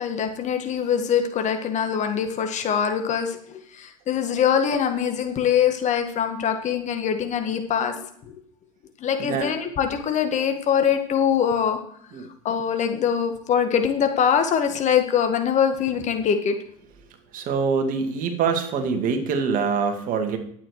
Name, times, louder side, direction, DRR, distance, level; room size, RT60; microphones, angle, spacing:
voice 1, 0.0-8.0 8.2-8.4 9.0-11.8 12.5-16.6, left 8 dB, 40° left, 6 dB, 1.8 m, -23 dB
voice 2, 9.2-9.5 12.1-12.3 17.3-20.4, right 5 dB, 45° right, 5 dB, 2.3 m, -24 dB
11.5 x 9.0 x 4.8 m, 0.63 s
figure-of-eight pair, 75°, 19 cm